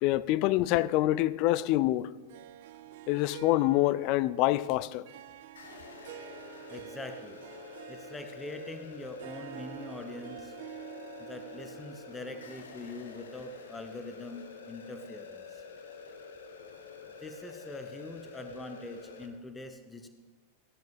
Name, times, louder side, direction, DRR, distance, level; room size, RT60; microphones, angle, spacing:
voice 1, 0.0-2.1 3.1-5.1, left 16 dB, 45° left, 0.3 m, -26 dB
Harp, 2.3-13.4, right 11 dB, 55° right, 0.4 m, -49 dB
sound 1, 5.6-19.3, left 5 dB, 65° left, 1.2 m, -48 dB
voice 2, 6.7-7.4 7.9-10.6 11.2-15.6 17.2-20.1, left 2 dB, 10° left, 1.0 m, -43 dB
15.5 x 10.5 x 3.5 m
figure-of-eight pair, 90°, 0 cm